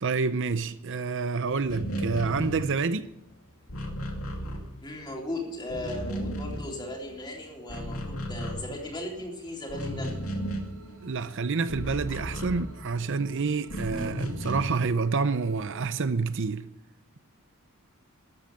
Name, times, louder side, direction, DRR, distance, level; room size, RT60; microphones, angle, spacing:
voice 1, 0.0-3.1 11.0-16.6, right 4 dB, 60° right, 0.6 m, -28 dB
sound 1, 1.7-5.3 5.5-7.2 7.5-13.2 13.6-14.9, equal, 75° left, 2.5 m, -35 dB
voice 2, 4.8-10.2 13.9-14.1, left 1 dB, 20° left, 3.8 m, -37 dB
sound 2, 9.6-16.0, right 2 dB, 85° right, 4.4 m, -53 dB
13.5 x 8.9 x 8.8 m
head